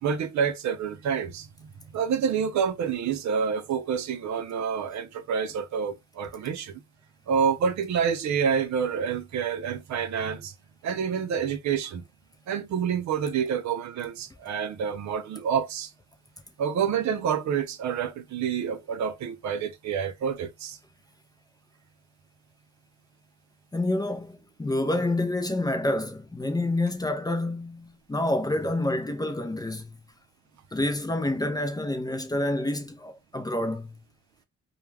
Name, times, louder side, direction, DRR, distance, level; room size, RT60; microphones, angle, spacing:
voice 1, 0.0-6.8 7.3-10.5 10.8-12.0 12.5-15.9 16.6-20.8, right 7 dB, 65° right, 0.6 m, -28 dB
voice 2, 23.7-30.0 30.7-34.0, left 1 dB, 15° left, 0.5 m, -28 dB
2.3 x 2.2 x 3.2 m
cardioid pair, 90°, 30 cm